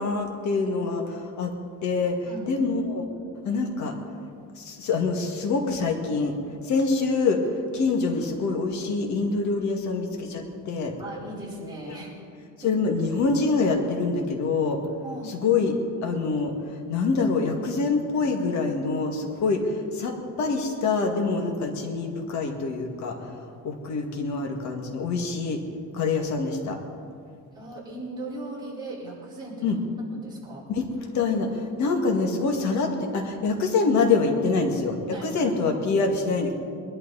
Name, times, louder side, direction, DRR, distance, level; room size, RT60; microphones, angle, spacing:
voice 1, 0.0-1.5 1.8-2.2 2.5-3.1 3.4-3.9 4.6-6.3 6.6-7.4 7.7-10.9 11.9-12.0 12.6-14.8 15.3-15.7 16.0-16.5 16.9-23.2 23.6-25.6 25.9-26.8 29.6-29.8 30.7-30.9 31.1-36.5, left 4 dB, 60° left, 3 dB, 2.2 m, -25 dB
voice 2, 2.2-2.6 11.0-12.1 12.6-12.7 15.0-15.4 27.5-29.8 30.1-30.7 35.1-35.5, right 2 dB, 15° right, -6 dB, 4.8 m, -38 dB
21.5 x 12.0 x 4.2 m, 2.2 s
cardioid pair, 140°, 33 cm